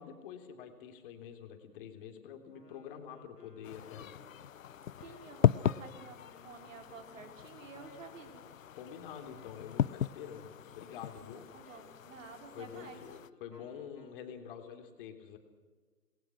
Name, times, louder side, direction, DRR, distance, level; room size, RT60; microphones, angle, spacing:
voice 1, 0.0-4.1 8.7-11.4 12.5-15.4, left 8 dB, 35° left, 6 dB, 3.2 m, -47 dB
Wind instrument woodwind instrument, 2.5-14.2, left 3 dB, 85° left, 4.5 m, -64 dB
sound 1, 3.6-13.3, left 9 dB, 55° left, 0.7 m, -36 dB
voice 2, 5.0-8.5 11.2-13.0, right 5 dB, 55° right, 5 dB, 4.6 m, -51 dB
28.0 x 20.5 x 6.3 m, 1.4 s
figure-of-eight pair, 130°, 47 cm